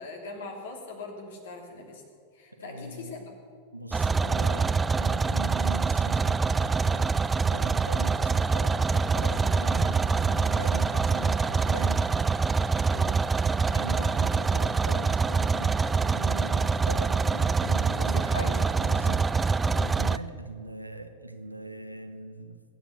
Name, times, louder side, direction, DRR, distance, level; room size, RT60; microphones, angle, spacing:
voice 1, 0.0-2.0 2.3-3.2 12.9-13.2 17.8-19.1 19.4-19.6, left 3 dB, 60° left, 3 dB, 3.1 m, -41 dB
voice 2, 2.5-3.1 3.7-12.1 13.7-22.6, right 1 dB, 85° right, 7 dB, 1.2 m, -40 dB
sound 1, 3.9-20.2, right 4 dB, 15° right, 0.4 m, -25 dB
22.0 x 9.3 x 6.8 m, 2.2 s
figure-of-eight pair, 90°, 0 cm